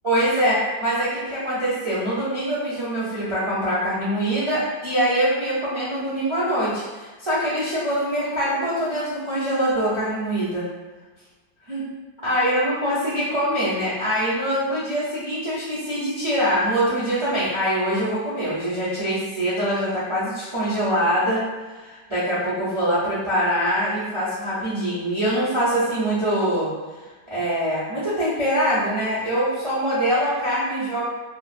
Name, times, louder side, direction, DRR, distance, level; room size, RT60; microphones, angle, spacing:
voice 1, 0.0-10.7 11.7-11.8 12.2-26.7 27.0-31.0, equal, 35° right, -10 dB, 0.5 m, -24 dB
2.9 x 2.4 x 2.4 m, 1.3 s
omnidirectional pair, 2.0 m